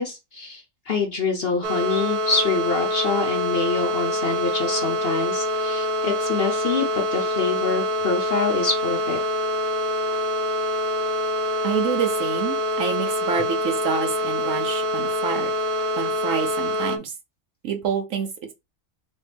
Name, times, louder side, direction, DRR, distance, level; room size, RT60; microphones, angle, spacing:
voice 1, 0.0-9.2, left 4 dB, 50° left, 0.9 m, -26 dB
sound 1, 1.6-17.0, equal, 80° right, 0.4 m, -25 dB
voice 2, 11.6-15.5 16.0-17.1 17.6-18.3, right 6 dB, 65° right, 1.1 m, -27 dB
4.3 x 2.7 x 3.3 m
omnidirectional pair, 1.6 m